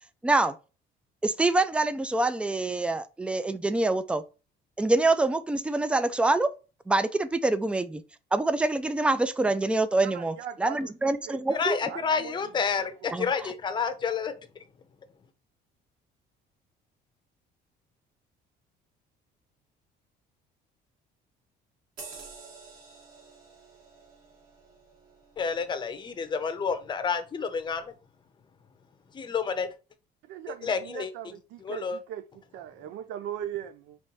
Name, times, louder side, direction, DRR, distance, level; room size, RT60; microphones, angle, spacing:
voice 1, 0.2-0.6 1.2-4.2 4.8-6.5 6.9-8.0 8.3-11.8 13.1-13.5, right 2 dB, 5° right, 0.3 m, -25 dB
voice 2, 10.0-10.9 11.3-12.9 30.2-32.2 32.5-34.0, right 10 dB, 80° right, 0.5 m, -40 dB
voice 3, 11.5-14.3 25.4-27.9 29.1-29.7 30.6-31.1 31.6-32.0, left 6 dB, 25° left, 0.6 m, -29 dB
sound 1, 22.0-26.9 27.4-27.5, right 4 dB, 55° right, 2.1 m, -50 dB
5.2 x 3.2 x 3.0 m
cardioid pair, 150°, 18 cm